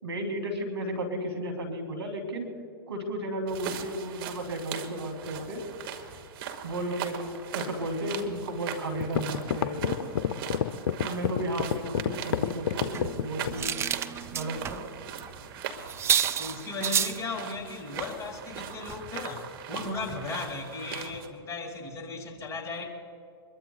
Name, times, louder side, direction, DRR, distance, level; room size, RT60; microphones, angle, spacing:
voice 1, 0.0-2.5 2.9-5.6 6.6-10.0 11.0-13.7 14.3-14.8, right 1 dB, 85° right, 3 dB, 3.3 m, -33 dB
sound 1, 3.5-21.3, right 8 dB, 60° right, 1.9 m, -40 dB
sound 2, 8.5-8.6 9.0-13.7, left 9 dB, 65° left, 0.7 m, -27 dB
sound 3, 12.9-14.8 15.1-15.3 15.6-15.7 15.9-17.2 17.9-18.1 18.5-18.6 18.9-19.0, right 9 dB, 20° right, 0.5 m, -29 dB
voice 2, 16.4-22.9, left 3 dB, 25° left, 1 dB, 2.7 m, -36 dB
24.0 x 22.0 x 2.4 m, 2.5 s
hypercardioid pair, 110°, 13 cm